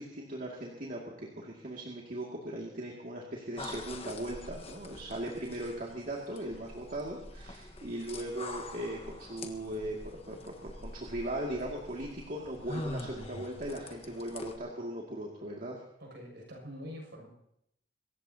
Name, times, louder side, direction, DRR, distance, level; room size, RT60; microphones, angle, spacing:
voice 1, 0.0-15.8, right 1 dB, 45° right, -2 dB, 2.4 m, -39 dB
sound 1, 3.6-14.6, left 2 dB, 30° left, 1.5 m, -45 dB
voice 2, 16.0-17.3, equal, 65° right, 1 dB, 7.1 m, -45 dB
26.0 x 15.0 x 2.9 m, 0.75 s
head